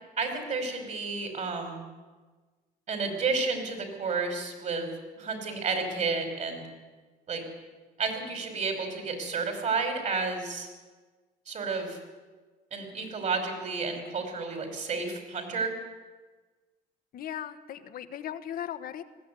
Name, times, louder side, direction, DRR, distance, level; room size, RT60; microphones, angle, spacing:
voice 1, 0.2-1.8 2.9-4.9 5.2-6.7 7.3-7.4 8.0-10.7 11.5-12.0 12.7-15.7, right 4 dB, 45° right, 5 dB, 5.5 m, -31 dB
voice 2, 17.1-19.0, left 10 dB, 60° left, 9 dB, 1.2 m, -37 dB
19.5 x 15.5 x 9.8 m, 1.3 s
cardioid pair, 110°, 17 cm